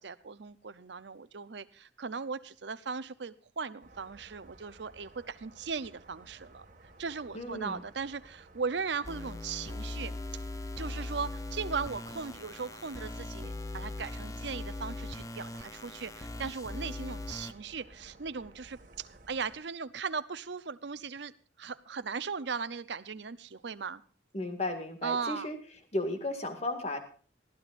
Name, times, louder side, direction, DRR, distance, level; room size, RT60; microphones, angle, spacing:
voice 1, 0.0-10.1 10.8-21.3 21.6-24.0 25.0-25.5, right 5 dB, 70° right, 14 dB, 0.7 m, -38 dB
sound 1, 3.8-19.6, right 2 dB, 45° right, 1.9 m, -56 dB
voice 2, 7.3-7.8 24.3-25.6 25.9-27.0, left 1 dB, 35° left, 6 dB, 2.0 m, -34 dB
sound 2, 9.0-17.5, left 2 dB, 20° left, 0.7 m, -40 dB
20.0 x 14.5 x 2.6 m, 0.40 s
head